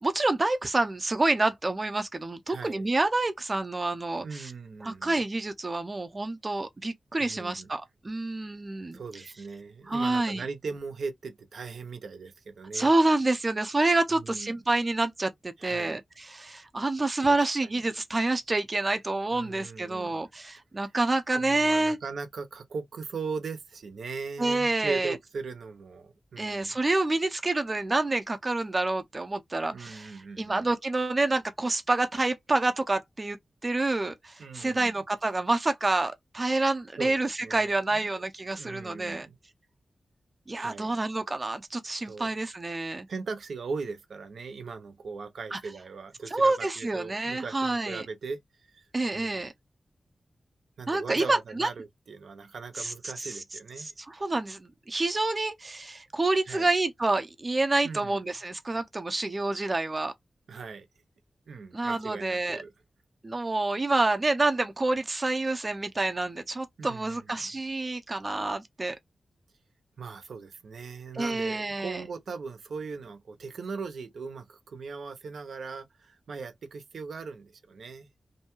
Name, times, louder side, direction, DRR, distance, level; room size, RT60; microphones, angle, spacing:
voice 1, 0.0-4.5 4.8-9.0 9.9-10.4 12.7-22.0 24.4-25.2 26.4-30.1 30.4-33.4 33.6-39.3 40.5-43.1 45.5-45.6 46.3-48.1 48.9-49.5 50.9-51.7 52.8-53.4 53.8-60.1 61.7-62.6 63.2-69.0 71.1-72.0, right 2 dB, 30° right, 0.4 m, -28 dB
voice 2, 2.5-2.8 4.2-5.1 7.2-7.7 8.9-12.9 14.2-14.5 15.6-16.0 17.3-17.8 19.3-20.3 20.8-20.9 21.3-26.8 29.7-30.7 34.4-35.0 37.0-38.1 38.6-39.4 40.6-41.0 42.0-42.4 43.1-48.4 48.7-49.4 50.8-53.9 56.5-56.7 57.8-58.2 60.5-60.9 61.5-62.7 66.8-67.5 70.0-78.1, right 4 dB, 85° right, 0.6 m, -39 dB
2.6 x 2.2 x 2.9 m
wide cardioid pair, 95°, 0 cm